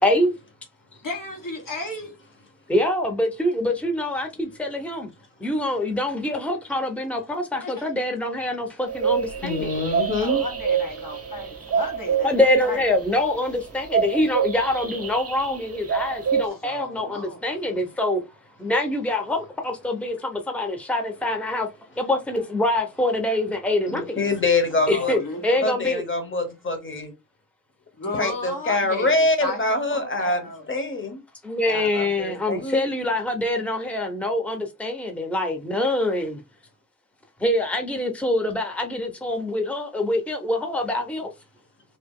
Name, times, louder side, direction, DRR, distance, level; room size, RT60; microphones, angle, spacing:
voice 1, 0.0-0.3 2.7-5.1 5.4-9.7 12.2-18.2 18.6-21.7 22.0-24.2 24.9-26.0 31.4-36.4 37.4-41.3, left 1 dB, 5° left, 0.7 m, -25 dB
voice 2, 1.0-2.2 7.6-7.8 10.2-12.8 16.4-17.4 24.8-25.6 28.0-30.7 32.3-32.5, left 1 dB, 75° left, 1.4 m, -34 dB
sound 1, 8.9-16.5, right 7 dB, 45° right, 0.6 m, -26 dB
voice 3, 9.4-10.4 23.9-25.1 25.6-27.1 28.2-31.2 31.7-32.9, left 2 dB, 35° left, 1.1 m, -25 dB
2.9 x 2.8 x 3.6 m
wide cardioid pair, 65°, 33 cm